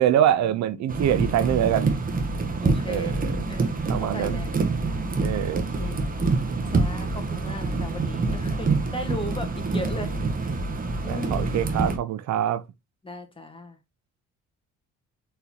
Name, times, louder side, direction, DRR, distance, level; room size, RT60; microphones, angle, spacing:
voice 1, 0.0-1.9 2.9-3.4 3.9-4.4 5.2-5.7 11.0-12.6, right 11 dB, 65° right, 0.5 m, -24 dB
sound 1, 0.9-12.0, right 3 dB, 30° right, 1.0 m, -26 dB
voice 2, 2.6-3.2 3.5-4.5 5.5-6.1 6.7-10.1 11.0-11.6 13.0-13.8, left 1 dB, 15° left, 1.3 m, -37 dB
4.1 x 3.9 x 2.8 m
cardioid pair, 90°, 30 cm